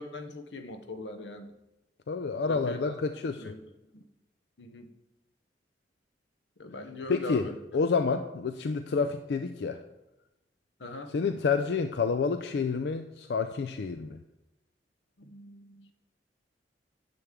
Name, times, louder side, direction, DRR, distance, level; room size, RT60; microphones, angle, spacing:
voice 1, 0.0-1.5 2.5-2.8 3.4-3.6 3.9-4.0 4.6-4.9 6.6-7.6 10.8-11.1 15.2-15.9, left 2 dB, 90° left, 8 dB, 0.8 m, -41 dB
voice 2, 2.1-3.4 7.1-9.8 11.1-14.2, left 5 dB, 65° left, 8 dB, 0.4 m, -29 dB
9.9 x 7.0 x 3.6 m, 0.96 s
head